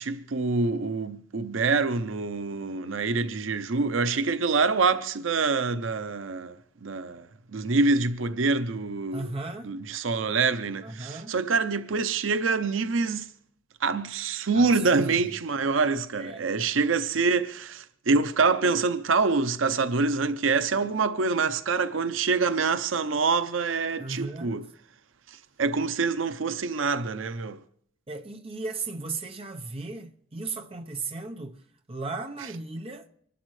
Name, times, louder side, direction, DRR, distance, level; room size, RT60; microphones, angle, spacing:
voice 1, 0.0-7.3 7.5-9.3 9.6-13.3 13.8-24.6 25.6-27.6, right 4 dB, 85° right, 0.7 m, -26 dB
voice 2, 9.1-9.7 10.8-11.4 14.5-15.2 16.2-16.4 24.0-24.7 28.1-31.6 31.9-33.1, right 3 dB, 30° right, 0.9 m, -36 dB
25.5 x 12.0 x 3.2 m
head